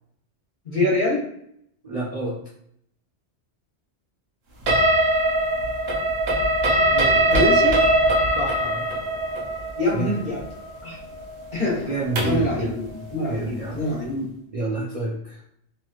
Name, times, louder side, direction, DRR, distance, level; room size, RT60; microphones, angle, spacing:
voice 1, 0.6-1.2 6.7-7.8 9.8-10.4 10.8-11.0 11.5-11.9 12.2-14.3, left 1 dB, 50° left, -5 dB, 1.2 m, -25 dB
voice 2, 1.8-2.4 8.4-8.9 9.9-10.2 11.9-12.8 13.3-13.8 14.5-15.4, right 2 dB, 45° right, -5 dB, 0.5 m, -28 dB
sound 1, 4.7-12.5, right 1 dB, 65° right, 0.9 m, -21 dB
2.9 x 2.9 x 2.4 m, 0.71 s
omnidirectional pair, 1.1 m